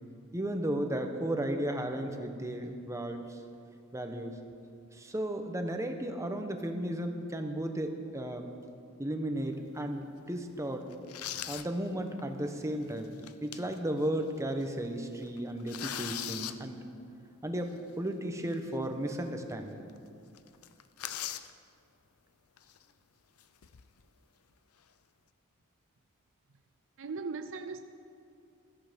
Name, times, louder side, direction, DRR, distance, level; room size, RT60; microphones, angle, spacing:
voice 1, 0.3-3.4 3.9-4.4 4.9-8.5 9.0-10.9 11.5-16.8 17.4-19.8, right 1 dB, 15° right, 1.1 m, -34 dB
sound 1, 9.5-9.8 10.3-10.4 10.9-11.7 12.1-12.2 13.0-13.8 14.2-14.3 14.6-14.9 15.2-16.6 18.5-18.6 19.1-19.2 19.5-19.6 19.9-20.1 20.4-21.5 22.6-22.8 23.4-24.0, left 11 dB, 85° left, 0.6 m, -40 dB
voice 2, 27.0-27.8, right 4 dB, 65° right, 0.6 m, -38 dB
16.0 x 13.5 x 5.2 m
head